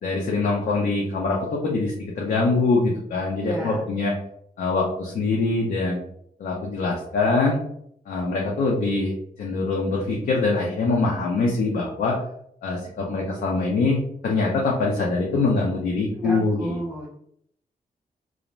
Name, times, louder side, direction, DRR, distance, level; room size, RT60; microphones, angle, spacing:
voice 1, 0.0-4.2 4.6-6.0 6.4-7.6 8.1-12.2 12.6-16.8, left 3 dB, 65° left, -2 dB, 0.5 m, -23 dB
voice 2, 3.4-3.8 16.1-17.1, right 1 dB, 5° right, -4 dB, 0.4 m, -32 dB
2.5 x 2.0 x 3.0 m, 0.69 s
wide cardioid pair, 175°, 16 cm